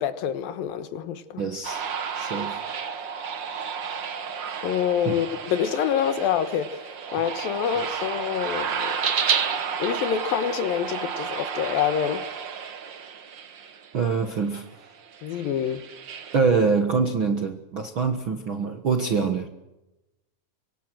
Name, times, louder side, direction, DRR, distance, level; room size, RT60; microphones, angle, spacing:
voice 1, 0.0-1.4 4.6-9.0 9.8-12.2 15.2-15.8, left 9 dB, 75° left, 2.8 m, -26 dB
voice 2, 1.4-1.8 2.1-2.6 5.0-5.1 7.8-8.0 13.9-14.7 16.3-19.5, right 5 dB, 55° right, 1.4 m, -25 dB
sound 1, 1.6-13.9 14.5-16.4, right 7 dB, 90° right, 1.0 m, -31 dB
26.0 x 24.0 x 6.2 m
omnidirectional pair, 4.4 m